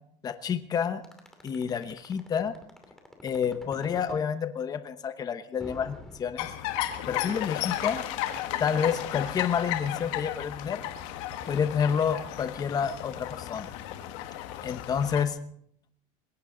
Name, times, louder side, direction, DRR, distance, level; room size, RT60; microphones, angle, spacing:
voice 1, 0.2-1.0 1.4-2.5 3.2-6.5 7.1-8.0 8.6-10.8 11.5-13.7 14.6-15.4, left 7 dB, 25° left, 10 dB, 1.0 m, -29 dB
sound 1, 1.0-4.3 5.6-7.0, left 1 dB, 5° left, 2.6 m, -46 dB
sound 2, 6.4-15.2, left 12 dB, 80° left, 1.5 m, -34 dB
21.5 x 17.5 x 3.8 m, 0.66 s
cardioid pair, 160°, 16 cm